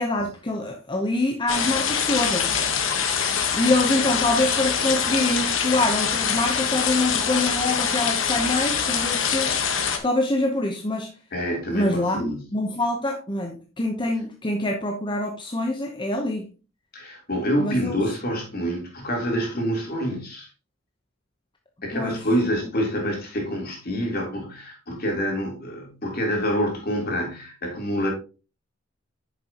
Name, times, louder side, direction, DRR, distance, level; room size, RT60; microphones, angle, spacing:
voice 1, 0.0-2.6 3.5-9.6 10.0-11.1 11.7-16.5 17.6-18.0 21.9-22.2, left 2 dB, 25° left, 0.9 m, -25 dB
sound 1, 1.5-10.0, left 7 dB, 70° left, 1.3 m, -24 dB
voice 2, 11.3-12.5 16.9-20.5 21.8-28.1, equal, 50° left, 3.5 m, -27 dB
9.1 x 6.8 x 2.9 m
head